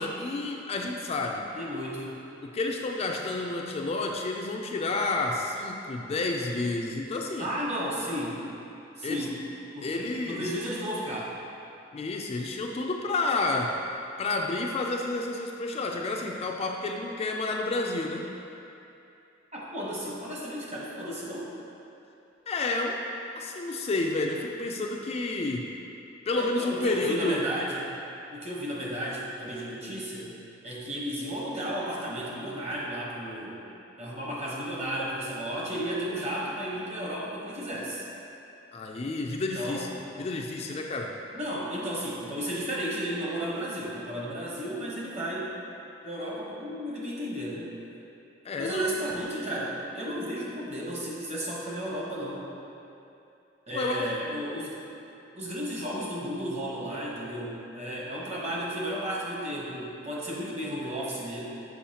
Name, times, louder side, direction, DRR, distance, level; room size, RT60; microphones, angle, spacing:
voice 1, 0.0-1.5 2.4-7.5 9.0-9.3 9.8-10.5 11.9-13.8 14.2-18.3 22.5-23.0 23.4-25.7 26.3-27.4 38.7-39.9 40.2-41.1 48.4-49.0 53.7-54.1, left 2 dB, 35° left, 1 dB, 0.3 m, -30 dB
voice 2, 1.5-2.2 7.4-8.4 9.0-9.4 9.8-11.3 19.5-21.5 26.3-27.9 28.3-30.3 30.6-33.6 34.0-38.0 39.4-39.9 41.3-45.5 46.0-47.7 48.6-52.5 53.7-54.9 55.3-61.4, equal, 35° right, -5 dB, 1.1 m, -33 dB
7.0 x 5.4 x 2.8 m, 2.7 s
head